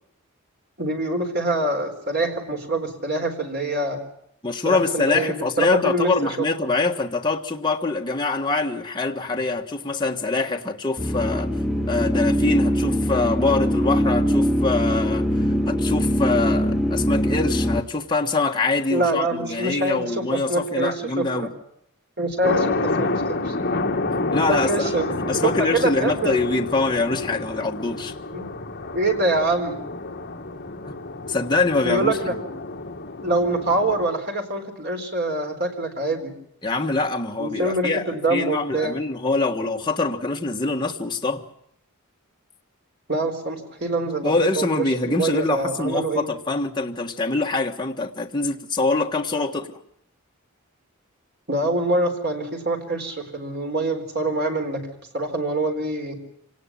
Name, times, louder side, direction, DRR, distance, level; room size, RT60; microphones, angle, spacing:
voice 1, 0.8-4.0 4.6-6.1 18.9-21.5 22.2-23.5 24.5-26.4 28.3-28.5 28.9-29.8 31.8-32.3 33.2-36.3 37.4-39.0 43.1-44.7 45.1-46.3 51.5-54.9 55.1-56.2, right 2 dB, 50° right, 4.2 m, -25 dB
voice 2, 4.4-11.5 11.9-15.3 15.7-21.5 24.3-25.0 25.3-28.1 30.9-31.0 31.3-32.2 36.6-41.4 44.2-49.8, left 3 dB, 20° left, 1.4 m, -24 dB
sound 1, 11.0-17.8, equal, ahead, 0.9 m, -22 dB
sound 2, 22.4-34.1, left 2 dB, 45° left, 1.7 m, -29 dB
26.0 x 19.0 x 7.3 m
head